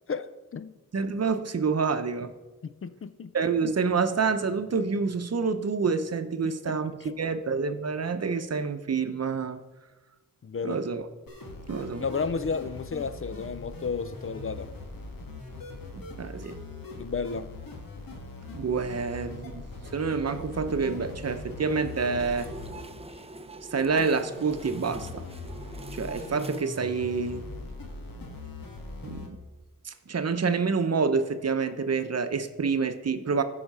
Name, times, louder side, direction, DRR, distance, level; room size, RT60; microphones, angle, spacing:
voice 1, 0.1-0.7 2.6-3.3 6.7-7.1 10.4-10.8 12.0-14.7 17.0-17.5, left 5 dB, 40° left, 0.5 m, -33 dB
voice 2, 0.9-2.3 3.3-6.9 7.2-9.6 10.6-11.1 11.7-12.0 16.2-16.6 18.5-19.7 19.9-22.5 23.7-25.3 25.9-27.6 29.0-29.4 29.8-33.4, right 5 dB, 50° right, 0.8 m, -28 dB
sound 1, 11.3-29.3, left 2 dB, 80° left, 1.6 m, -41 dB
sound 2, 21.7-26.6, right 2 dB, 20° right, 0.6 m, -43 dB
13.5 x 5.0 x 5.5 m
cardioid pair, 75°, 34 cm